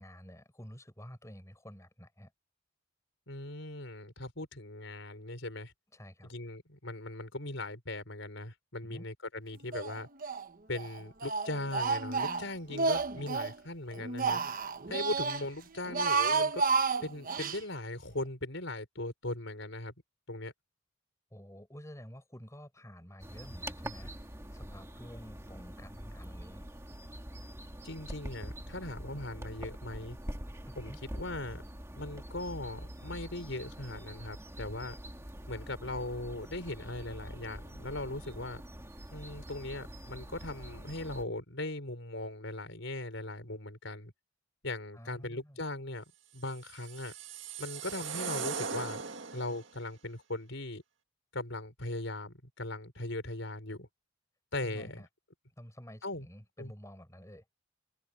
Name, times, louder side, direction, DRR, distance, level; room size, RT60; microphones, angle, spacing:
voice 1, 0.0-2.3 5.9-6.3 8.8-9.0 21.3-26.7 30.7-31.0 44.9-45.6 54.6-55.1 55.6-57.4, equal, 15° left, 6.8 m, -50 dB
voice 2, 3.3-5.7 6.2-10.1 10.7-14.4 14.9-16.6 17.0-19.9 20.3-20.5 27.8-30.2 30.8-31.6 31.9-35.0 35.5-38.6 39.1-44.1 44.6-46.0 46.3-47.1 47.6-49.0 49.3-50.8 51.3-53.9 54.5-55.0 56.0-56.3 56.6-56.7, left 2 dB, 65° left, 5.6 m, -39 dB
Speech, 9.7-10.4 10.7-13.6 13.9-15.4 15.8-17.6, right 4 dB, 45° right, 1.1 m, -31 dB
sound 1, 23.2-41.2, right 1 dB, 15° right, 2.0 m, -45 dB
sound 2, 46.5-49.7, right 6 dB, 65° right, 2.0 m, -39 dB
head